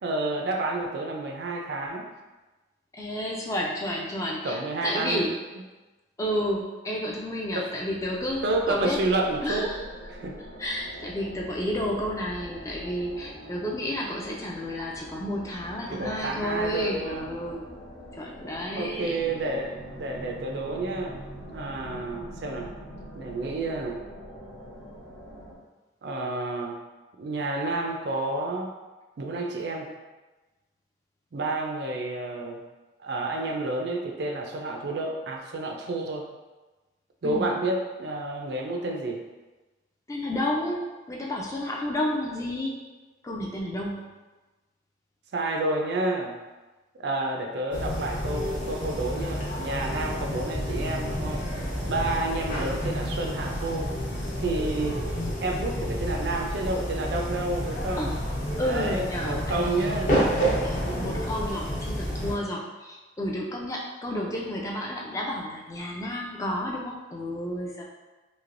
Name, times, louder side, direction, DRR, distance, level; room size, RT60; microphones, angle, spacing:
voice 1, 0.0-2.1 4.4-5.3 7.5-7.7 8.4-9.6 10.1-10.3 15.9-17.3 18.7-21.2 21.5-22.7 23.1-24.0 26.0-26.7 27.2-28.7 29.2-29.9 31.3-32.6 33.0-36.3 37.2-39.2 45.3-46.3 47.0-51.4 51.9-53.9 54.4-55.0 55.4-58.2 58.6-60.2 60.9-61.0, right 2 dB, 60° right, 2 dB, 0.4 m, -30 dB
voice 2, 2.9-5.3 6.2-9.0 9.4-9.9 10.6-17.7 18.2-19.2 37.2-37.5 40.1-42.8 43.2-44.1 58.0-58.1 58.6-60.1 60.6-67.8, left 1 dB, 15° left, -2 dB, 0.3 m, -31 dB
sound 1, 7.6-25.5, equal, 80° left, 1.0 m, -44 dB
sound 2, 47.7-62.3, equal, 45° left, 0.7 m, -30 dB
3.1 x 2.8 x 2.5 m, 1.2 s
head